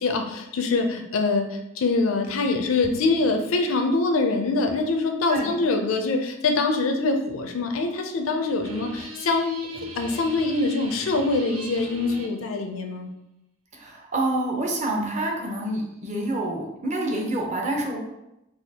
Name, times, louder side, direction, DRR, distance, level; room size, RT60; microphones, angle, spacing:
voice 1, 0.0-9.6 10.0-13.1, left 3 dB, 75° left, 4 dB, 0.4 m, -24 dB
sound 1, 2.8-4.6, left 1 dB, 15° left, 0.4 m, -47 dB
sound 2, 8.6-12.4, right 1 dB, 85° right, 0.5 m, -38 dB
voice 2, 13.7-18.0, right 1 dB, 35° right, 1 dB, 0.6 m, -27 dB
4.1 x 2.4 x 2.7 m, 0.89 s
head